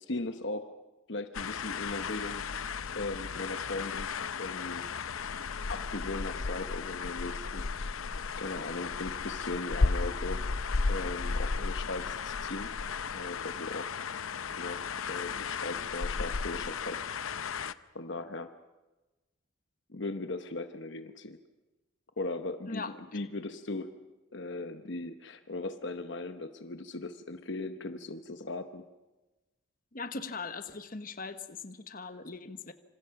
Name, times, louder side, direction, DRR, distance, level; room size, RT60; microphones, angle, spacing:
voice 1, 0.1-0.7 1.1-2.4 3.0-4.9 5.7-8.0 8.4-10.5 10.9-12.7 13.1-14.0 14.6-17.0 17.9-18.5 19.9-21.4 22.2-23.9 24.3-28.8, left 2 dB, 60° left, 9 dB, 1.0 m, -38 dB
sound 1, 1.3-17.7, left 4 dB, 85° left, 0.7 m, -34 dB
voice 2, 29.9-32.7, left 4 dB, 40° left, 10 dB, 1.2 m, -40 dB
27.0 x 26.5 x 5.9 m, 1.1 s
head